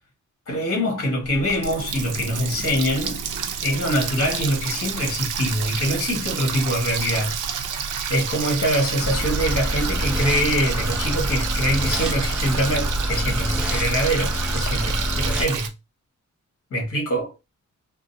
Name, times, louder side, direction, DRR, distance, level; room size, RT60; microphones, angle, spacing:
voice 1, 0.5-3.2 3.6-7.4 8.1-15.7 16.7-17.3, equal, 45° left, 1.5 m, -24 dB
Water tap faucet, 1.2-15.7, right 6 dB, 85° right, 0.6 m, -29 dB
sound 1, 9.0-15.4, equal, 5° right, 0.4 m, -26 dB
3.7 x 2.0 x 2.7 m
wide cardioid pair, 165°, 31 cm